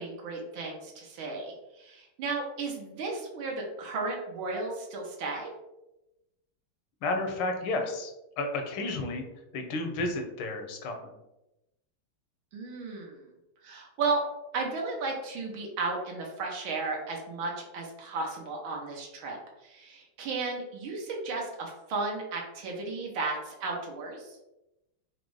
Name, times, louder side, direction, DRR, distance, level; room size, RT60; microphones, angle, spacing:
voice 1, 0.0-5.5 12.5-13.2 13.6-14.2 14.5-24.4, right 3 dB, 85° right, -1 dB, 1.7 m, -34 dB
voice 2, 7.0-8.1 8.4-9.2 9.5-11.2, left 2 dB, 80° left, 4 dB, 1.6 m, -32 dB
5.0 x 2.1 x 4.7 m, 0.93 s
omnidirectional pair, 2.2 m